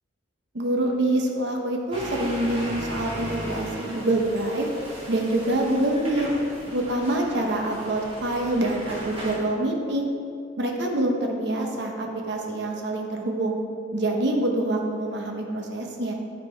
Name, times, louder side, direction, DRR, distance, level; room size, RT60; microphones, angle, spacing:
voice 1, 0.5-4.7 5.1-6.3 6.7-10.1 10.6-13.6 13.9-16.1, right 1 dB, 65° right, 2 dB, 0.9 m, -26 dB
sound 1, 1.9-9.4, equal, 30° right, 1.4 m, -36 dB
8.8 x 4.2 x 4.4 m, 2.4 s
head